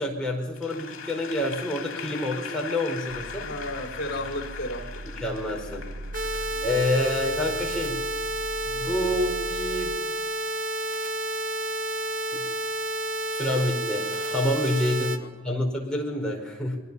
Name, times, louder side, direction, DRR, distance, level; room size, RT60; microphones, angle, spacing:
voice 1, 0.0-3.5 5.2-5.9 6.6-8.0 8.6-10.1 12.3-12.4 13.3-16.8, left 1 dB, 5° left, -2 dB, 5.0 m, -28 dB
Applause / Crowd, 0.6-6.9, left 7 dB, 70° left, 2.5 m, -40 dB
sound 1, 3.1-10.0, right 1 dB, 90° right, 1.2 m, -40 dB
voice 2, 3.3-5.0 15.2-15.6, left 1 dB, 50° left, 2 dB, 4.0 m, -34 dB
sound 2, 6.1-15.2, right 1 dB, 40° right, 1.2 m, -30 dB
28.5 x 21.5 x 5.7 m, 1.1 s
head